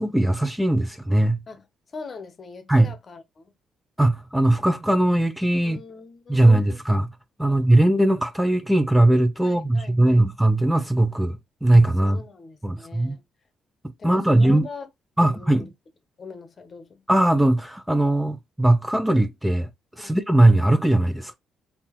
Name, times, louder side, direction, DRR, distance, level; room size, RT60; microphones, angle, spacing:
voice 1, 0.0-1.4 2.7-2.9 4.0-5.8 6.3-7.1 7.4-12.2 12.6-13.2 14.0-14.7 15.2-15.6 17.1-19.7 20.0-21.3, right 1 dB, 5° right, 0.5 m, -19 dB
voice 2, 1.5-3.5 5.6-6.8 7.5-7.6 9.4-10.3 12.0-13.2 14.0-14.9 15.2-15.7 16.2-17.0 20.0-20.2, left 4 dB, 40° left, 0.8 m, -42 dB
3.6 x 2.8 x 2.9 m
cardioid pair, 90°, 0 cm